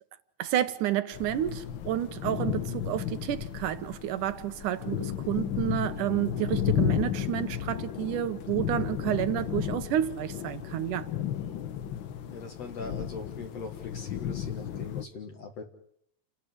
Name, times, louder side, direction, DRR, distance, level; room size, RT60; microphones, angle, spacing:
voice 1, 0.4-11.1, right 12 dB, 75° right, 2.6 m, -30 dB
sound 1, 1.1-15.0, left 10 dB, 85° left, 1.0 m, -33 dB
voice 2, 12.3-15.6, left 4 dB, 55° left, 2.8 m, -40 dB
29.5 x 12.0 x 9.7 m
omnidirectional pair, 3.7 m